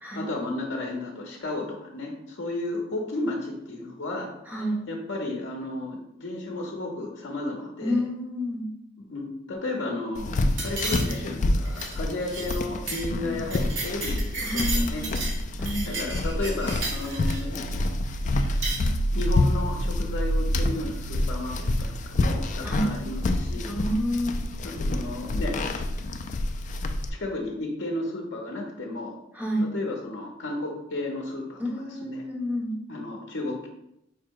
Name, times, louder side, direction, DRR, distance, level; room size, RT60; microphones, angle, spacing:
voice 1, 0.1-4.3 4.9-8.0 9.1-15.0 15.8-17.9 19.1-23.7 24.6-25.6 27.1-29.2 29.7-31.6 32.0-32.2 32.9-33.7, left 2 dB, 65° left, 0 dB, 0.7 m, -33 dB
voice 2, 4.5-4.9 7.8-8.6 14.4-15.1 15.6-15.9 22.6-22.9 23.7-24.4 29.3-29.7 31.6-32.7, equal, 10° right, -3 dB, 1.0 m, -29 dB
sound 1, 10.1-27.1, left 1 dB, 40° left, 0.3 m, -27 dB
sound 2, 10.6-11.4 11.7-12.0 12.3-12.6 12.9-13.1 13.3-15.4 15.7-17.4 18.4-18.8, right 3 dB, 70° right, 1.3 m, -33 dB
4.8 x 2.1 x 4.6 m, 0.79 s
head